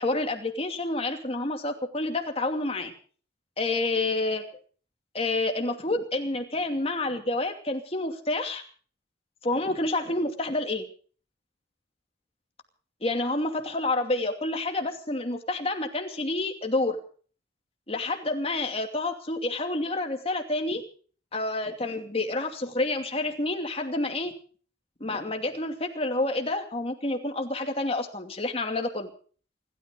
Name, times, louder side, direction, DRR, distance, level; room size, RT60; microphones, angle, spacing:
voice 1, 0.0-2.9 3.6-4.6 5.1-8.6 9.4-10.9 13.0-17.0 17.9-20.8 21.3-24.3 25.0-29.1, left 2 dB, 30° left, 4 dB, 2.6 m, -29 dB
28.0 x 13.0 x 3.8 m, 0.43 s
head